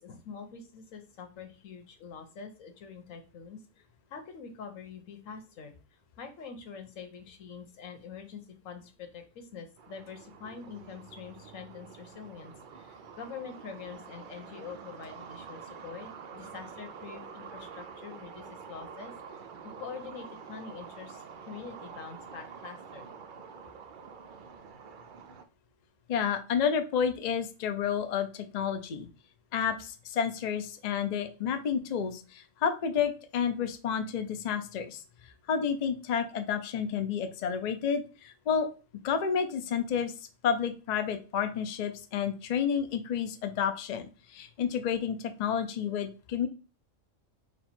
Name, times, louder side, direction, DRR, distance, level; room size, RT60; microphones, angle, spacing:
voice 1, 0.0-3.8 4.1-23.1, left 6 dB, 90° left, 6 dB, 1.2 m, -45 dB
sound 1, 9.8-25.5, right 6 dB, 65° right, 0.5 m, -47 dB
voice 2, 26.1-29.1 29.5-38.7 39.0-40.1 40.4-46.5, left 7 dB, 55° left, 7 dB, 0.5 m, -30 dB
4.3 x 2.4 x 4.2 m, 0.35 s
omnidirectional pair, 1.3 m